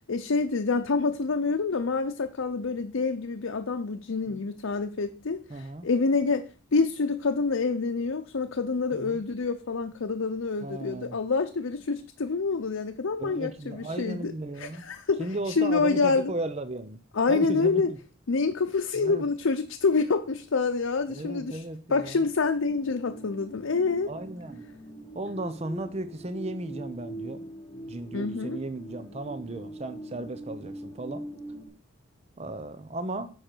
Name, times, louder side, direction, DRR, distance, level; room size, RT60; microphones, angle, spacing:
voice 1, 0.1-6.4 6.7-14.3 14.6-15.3 15.6-16.3 17.1-17.9 18.3-21.6 21.9-24.1 28.1-28.6, left 4 dB, 90° left, 0.6 m, -27 dB
voice 2, 5.5-5.9 8.9-9.2 10.6-11.2 13.2-14.9 15.2-17.0 17.3-18.0 19.0-19.3 21.1-22.2 24.1-24.6 25.1-27.5 27.9-31.2 32.4-33.3, right 2 dB, 30° right, 0.6 m, -35 dB
sound 1, 22.6-31.7, right 1 dB, 20° left, 3.6 m, -42 dB
9.9 x 6.4 x 4.5 m
head